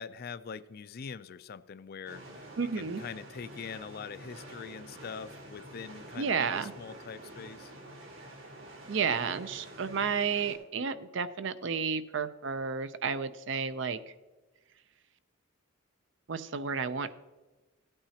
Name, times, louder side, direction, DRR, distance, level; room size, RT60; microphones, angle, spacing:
voice 1, 0.0-7.7, left 6 dB, 45° left, 15 dB, 0.4 m, -43 dB
sound 1, 2.1-10.6, right 1 dB, 80° right, 3.7 m, -48 dB
voice 2, 2.6-3.0 6.2-6.7 8.9-14.0 16.3-17.1, right 6 dB, 60° right, 13 dB, 0.5 m, -32 dB
16.0 x 8.8 x 2.8 m, 1.2 s
head